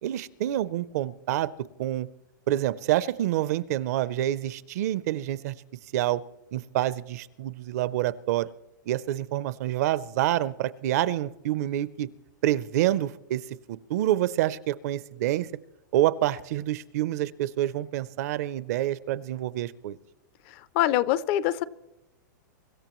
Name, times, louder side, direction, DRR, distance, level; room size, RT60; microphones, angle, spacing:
voice 1, 0.0-1.5 1.8-2.1 2.5-5.5 5.9-6.2 6.5-8.5 8.9-12.1 12.4-13.4 13.7-15.5 15.9-20.0, right 13 dB, 55° right, 18 dB, 0.5 m, -27 dB
voice 2, 20.5-21.6, left 13 dB, 35° left, 19 dB, 0.4 m, -25 dB
24.0 x 13.0 x 3.0 m, 0.95 s
supercardioid pair, 155°, 11 cm